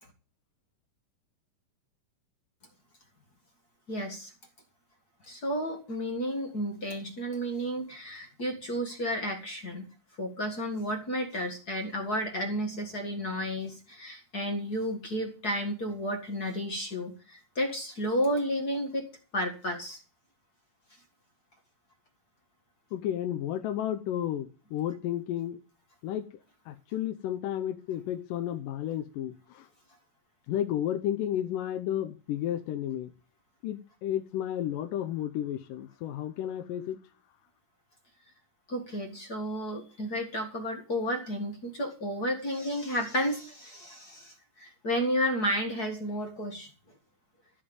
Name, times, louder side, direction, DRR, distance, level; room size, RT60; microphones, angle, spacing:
voice 1, 3.9-4.3 5.3-9.9 10.2-20.0 38.7-46.7, equal, 35° left, 4 dB, 1.7 m, -32 dB
voice 2, 22.9-25.6 26.0-26.3 26.7-29.7 30.5-33.1 33.6-37.0, left 11 dB, 85° left, 6 dB, 2.5 m, -32 dB
14.5 x 5.3 x 8.7 m, 0.35 s
omnidirectional pair, 3.8 m